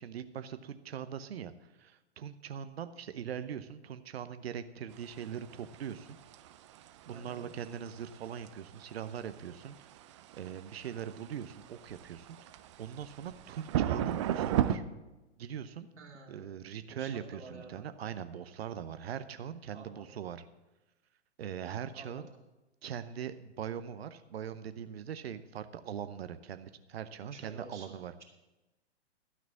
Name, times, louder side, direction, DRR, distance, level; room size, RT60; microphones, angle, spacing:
voice 1, 0.0-1.5 1.8-6.2 7.1-9.9 10.4-12.5 12.8-14.8 15.4-15.9 16.3-20.4 21.4-22.3 22.8-28.1, right 8 dB, 60° right, 12 dB, 0.8 m, -41 dB
sound 1, 5.0-14.8, right 11 dB, 25° right, 0.4 m, -36 dB
voice 2, 7.1-7.4 16.0-16.6 16.9-18.1 19.7-20.1 21.9-22.2 27.3-28.2, right 2 dB, 75° right, -1 dB, 2.7 m, -51 dB
12.5 x 6.1 x 7.1 m, 1.1 s
figure-of-eight pair, 115°, 35 cm